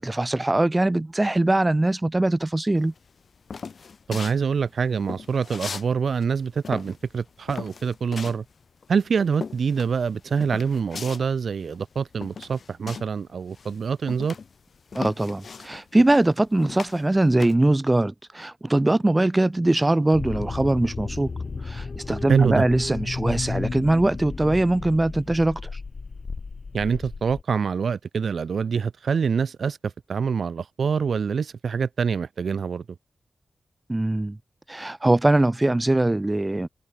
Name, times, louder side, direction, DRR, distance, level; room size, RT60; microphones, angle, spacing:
voice 1, 0.0-2.9 14.9-21.3 21.6-25.6 33.9-34.4 34.7-36.7, right 2 dB, 15° right, 2.6 m, -22 dB
sound 1, 2.9-5.9 6.2-13.2 13.5-17.6, left 5 dB, 55° left, 6.9 m, -38 dB
voice 2, 4.1-8.4 8.9-14.3 22.3-22.6 26.7-32.8, right 6 dB, 70° right, 1.7 m, -25 dB
sound 2, 20.1-27.4, left 4 dB, 40° left, 4.7 m, -33 dB
wide cardioid pair, 170°, 0 cm